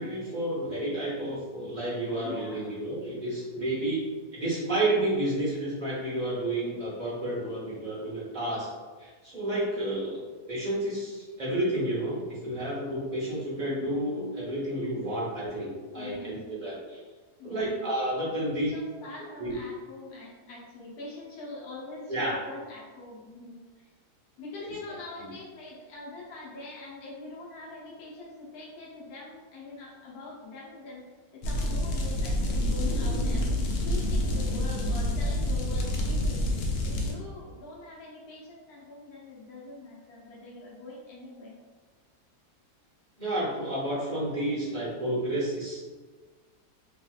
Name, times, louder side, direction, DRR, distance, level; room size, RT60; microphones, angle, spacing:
voice 1, 0.0-4.0 4.3-8.7 9.0-17.0 17.4-18.7 19.4-19.5 22.1-22.4 24.6-24.7 43.2-45.8, right 1 dB, 35° right, -6 dB, 0.8 m, -31 dB
voice 2, 2.2-2.6 3.6-3.9 15.1-15.2 15.9-16.6 17.4-17.9 18.5-23.9 24.4-41.6, left 2 dB, 70° left, -5 dB, 1.3 m, -43 dB
sound 1, 31.4-37.1, left 1 dB, 90° left, 1.2 m, -27 dB
3.1 x 3.0 x 2.3 m, 1.4 s
omnidirectional pair, 1.7 m